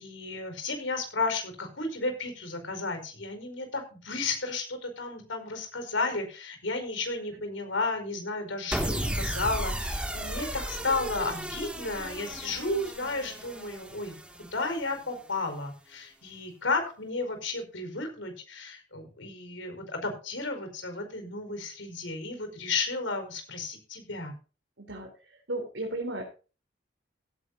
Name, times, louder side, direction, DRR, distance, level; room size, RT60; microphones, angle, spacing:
voice 1, 0.0-24.3, left 3 dB, 85° left, 6 dB, 4.8 m, -33 dB
sound 1, 8.7-15.1, right 1 dB, 5° right, 2.2 m, -34 dB
voice 2, 24.8-26.2, right 2 dB, 75° right, 0 dB, 3.7 m, -35 dB
17.0 x 10.5 x 2.7 m, 0.34 s
head